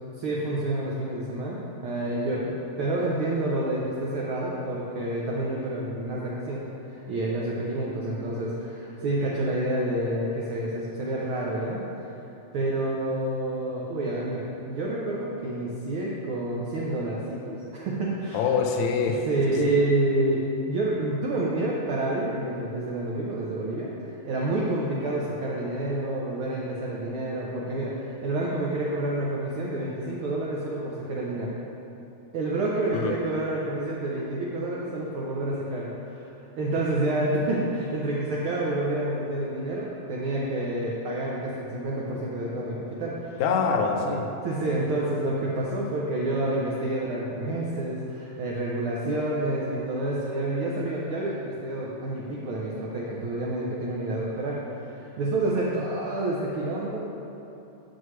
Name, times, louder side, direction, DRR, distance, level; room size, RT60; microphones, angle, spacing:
voice 1, 0.2-11.8 12.5-18.5 19.3-20.4 20.7-23.9 24.2-31.5 32.3-36.3 36.6-43.4 44.4-57.0, right 1 dB, 90° right, -4 dB, 1.1 m, -28 dB
voice 2, 18.3-19.7 32.9-33.1 43.4-44.3, left 5 dB, 80° left, 3 dB, 1.9 m, -25 dB
9.3 x 6.2 x 3.1 m, 3.0 s
omnidirectional pair, 3.3 m